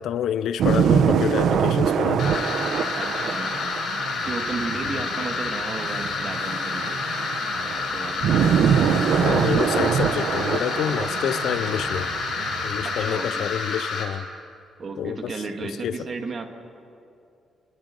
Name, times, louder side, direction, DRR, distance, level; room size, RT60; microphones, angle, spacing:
voice 1, 0.0-2.4 4.9-5.0 8.4-8.6 9.2-12.1 12.6-14.3 15.0-15.3 15.6-16.0, left 9 dB, 70° left, 14 dB, 0.8 m, -28 dB
sound 1, 0.6-13.0, right 7 dB, 65° right, 1.1 m, -24 dB
sound 2, 2.2-14.0, left 4 dB, 50° left, 7.0 m, -29 dB
voice 2, 3.0-3.7 4.2-7.0 7.6-8.2 12.8-13.5 14.8-16.5, right 4 dB, 35° right, 5 dB, 2.0 m, -34 dB
25.5 x 20.5 x 9.3 m, 2.5 s
cardioid pair, 175°, 0 cm